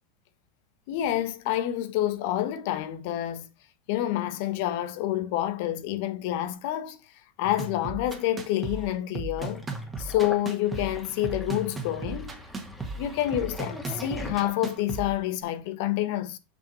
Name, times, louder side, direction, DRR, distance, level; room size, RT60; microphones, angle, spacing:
voice 1, 0.9-3.4 3.9-7.0 7.4-9.6 10.0-12.3 13.0-16.4, left 13 dB, 65° left, 1.3 m, -28 dB
sound 1, 7.4-15.4, right 3 dB, 20° right, 1.7 m, -36 dB
Sink (filling or washing), 9.4-15.0, left 2 dB, 5° left, 2.2 m, -43 dB
6.3 x 5.7 x 4.2 m
supercardioid pair, 120°, 0 cm